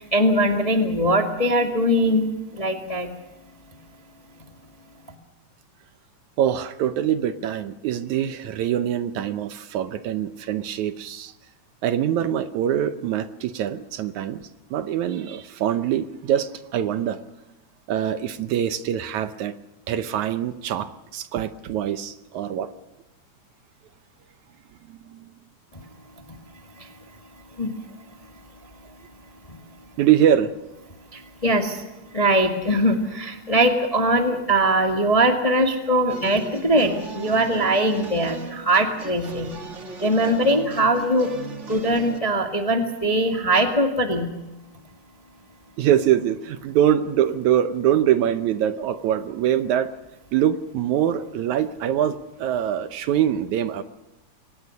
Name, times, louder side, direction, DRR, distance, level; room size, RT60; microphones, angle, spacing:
voice 1, 0.0-3.1 25.7-25.8 26.3-26.4 26.8-26.9 27.5-27.7 29.5-29.6 31.1-39.5 40.0-41.3 41.7-44.3, right 1 dB, 15° left, 4 dB, 1.2 m, -21 dB
voice 2, 6.4-11.3 11.8-14.4 14.7-17.2 17.9-19.5 19.9-22.7 24.9-25.3 30.0-30.5 45.8-49.9 50.3-53.8, right 10 dB, 70° right, 11 dB, 2.1 m, -23 dB
sound 1, 36.1-42.2, right 4 dB, 35° right, 1.2 m, -37 dB
23.5 x 19.0 x 6.4 m, 0.99 s
omnidirectional pair, 3.7 m